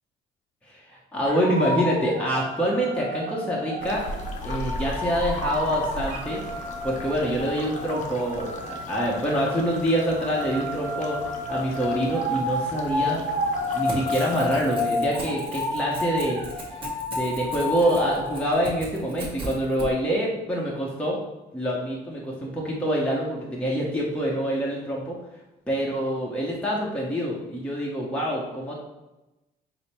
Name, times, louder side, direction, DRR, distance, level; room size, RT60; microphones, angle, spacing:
voice 1, 0.6-4.0 4.4-6.4 6.8-11.2 11.5-13.2 13.7-21.2 21.5-25.2 25.7-28.7, equal, 5° left, -4 dB, 0.8 m, -26 dB
sound 1, 1.3-18.5, left 1 dB, 50° right, 1.3 m, -31 dB
sound 2, 3.8-14.6, left 1 dB, 45° left, 0.7 m, -37 dB
Crackle / Tearing, 13.5-19.9, right 2 dB, 30° right, 1.4 m, -38 dB
5.0 x 2.0 x 4.3 m, 1.0 s
cardioid pair, 110°, 17 cm